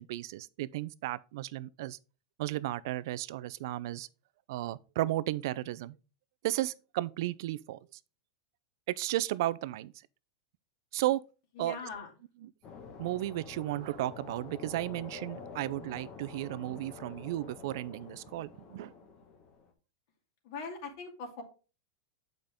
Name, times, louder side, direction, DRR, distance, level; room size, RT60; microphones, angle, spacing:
voice 1, 0.0-2.0 2.4-4.1 4.5-6.0 6.4-7.8 8.9-9.9 10.9-11.2 11.6-11.8 13.0-18.9, right 15 dB, 65° right, 0.5 m, -34 dB
voice 2, 11.6-12.1 20.4-21.4, left 4 dB, 60° left, 2.4 m, -41 dB
sound 1, 12.6-19.7, left 5 dB, 35° left, 1.4 m, -48 dB
8.0 x 5.2 x 3.5 m
supercardioid pair, 150°, 2 cm